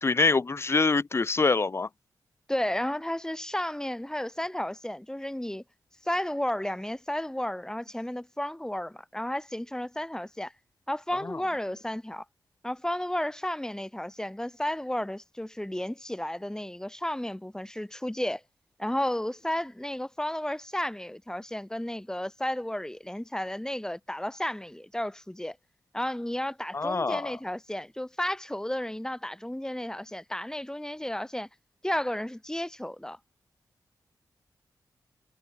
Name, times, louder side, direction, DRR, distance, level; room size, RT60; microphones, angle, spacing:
voice 1, 0.0-1.9 11.2-11.4 26.7-27.4, left 4 dB, 35° left, 0.4 m, -25 dB
voice 2, 2.5-5.6 6.0-10.5 10.9-12.2 12.6-18.4 18.8-25.6 25.9-31.5 31.8-33.2, left 1 dB, 10° left, 2.0 m, -33 dB
cardioid pair, 60°, 8 cm